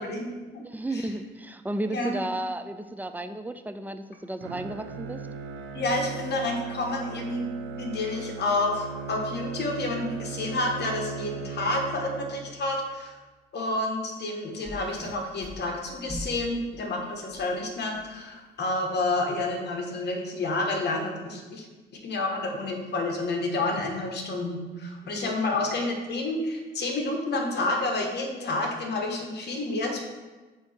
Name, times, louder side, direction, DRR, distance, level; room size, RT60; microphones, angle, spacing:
voice 1, 0.0-0.6 1.9-2.2 5.7-7.5 7.8-13.1 13.5-21.6 22.0-30.0, left 2 dB, 60° left, 1 dB, 1.4 m, -29 dB
voice 2, 0.6-5.3 25.2-25.4, right 1 dB, 10° right, 9 dB, 0.4 m, -33 dB
Bowed string instrument, 4.4-12.7, right 6 dB, 85° right, 0.7 m, -38 dB
sound 1, 14.6-17.5 17.9-18.3 19.0-19.1, equal, 20° left, 1.1 m, -41 dB
8.6 x 2.9 x 4.4 m, 1.2 s
cardioid pair, 90°, 20 cm